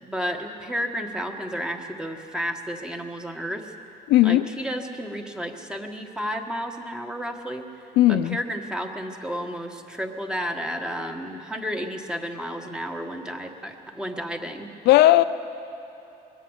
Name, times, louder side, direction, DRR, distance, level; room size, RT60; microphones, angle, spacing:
voice 1, 0.0-3.7 4.2-7.6 8.1-14.7, equal, 5° right, 3 dB, 1.6 m, -32 dB
voice 2, 4.1-4.4 8.0-8.4 14.9-15.2, left 15 dB, 85° left, 12 dB, 0.6 m, -16 dB
23.0 x 18.0 x 6.5 m, 2.8 s
cardioid pair, 110°, 17 cm